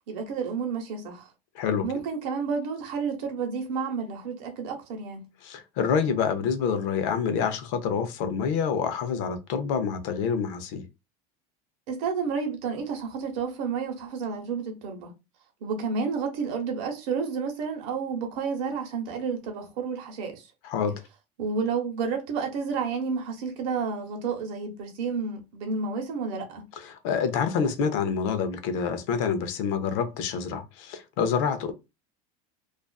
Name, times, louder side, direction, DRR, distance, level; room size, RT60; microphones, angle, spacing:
voice 1, 0.1-1.3 1.8-5.3 11.9-15.1 15.6-20.5 21.4-26.6, right 5 dB, 60° right, 0.9 m, -30 dB
voice 2, 5.4-10.8 20.6-20.9 26.8-31.7, left 6 dB, 60° left, 0.5 m, -27 dB
2.4 x 2.3 x 2.2 m
supercardioid pair, 160°, 19 cm